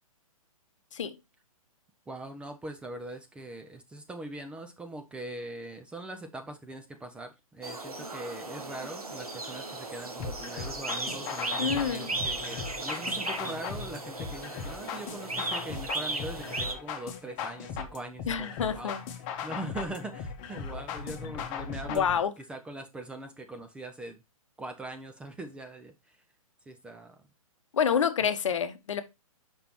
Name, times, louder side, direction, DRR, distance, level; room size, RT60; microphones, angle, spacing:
voice 1, 2.1-18.9 19.2-22.0 22.4-24.2 24.6-26.2 26.7-27.2 28.2-28.3, right 2 dB, 5° right, 0.4 m, -41 dB
sound 1, 7.6-16.7, right 3 dB, 85° right, 1.2 m, -36 dB
sound 2, 10.2-22.2, left 6 dB, 30° left, 1.0 m, -38 dB
voice 2, 11.6-12.1 18.3-19.0 21.9-22.3 27.7-29.0, left 7 dB, 55° left, 0.8 m, -28 dB
6.7 x 5.3 x 2.9 m
figure-of-eight pair, 120°, 18 cm